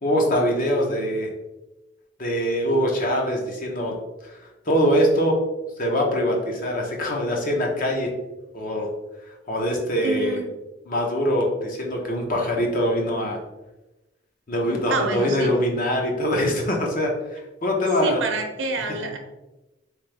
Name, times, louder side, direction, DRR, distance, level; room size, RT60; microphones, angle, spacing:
voice 1, 0.0-1.3 2.2-4.0 4.2-4.4 4.7-5.4 5.8-8.1 8.5-8.9 9.5-10.4 10.9-13.4 14.5-18.2 18.9-19.1, equal, 45° left, 0 dB, 0.8 m, -23 dB
voice 2, 10.0-10.5 14.9-15.5 18.0-19.2, right 4 dB, 75° right, 4 dB, 0.7 m, -27 dB
3.8 x 3.3 x 3.3 m, 1.0 s
head